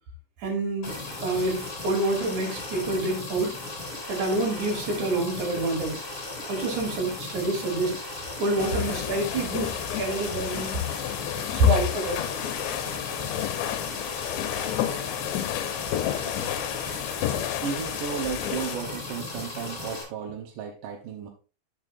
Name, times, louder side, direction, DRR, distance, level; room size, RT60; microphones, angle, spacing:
voice 1, 0.4-3.6 4.1-6.0 6.5-8.0 8.4-10.9 11.5-12.2, right 1 dB, 50° right, 3.5 m, -27 dB
sound 1, 0.8-20.0, left 2 dB, 35° left, 4.1 m, -36 dB
sound 2, 8.6-18.8, left 12 dB, 85° left, 2.8 m, -31 dB
voice 2, 16.3-16.8 17.6-21.3, right 7 dB, 70° right, 2.1 m, -34 dB
11.0 x 6.7 x 2.6 m
omnidirectional pair, 5.0 m